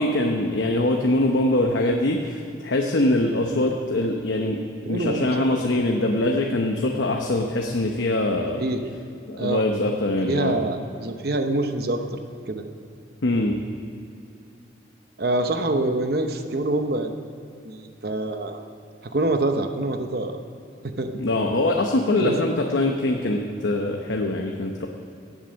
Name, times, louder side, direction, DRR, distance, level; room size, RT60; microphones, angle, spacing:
voice 1, 0.0-4.6 4.9-8.6 9.3-10.5 13.2-13.6 21.2-24.9, left 1 dB, 75° left, 2 dB, 0.9 m, -23 dB
voice 2, 4.8-5.5 8.6-8.8 9.4-9.6 10.3-12.2 12.5-12.6 15.2-17.1 17.6-18.6 19.0-20.4 20.8-21.1 22.2-22.4, right 2 dB, 55° right, 6 dB, 0.8 m, -25 dB
18.0 x 7.5 x 6.4 m, 2.6 s
head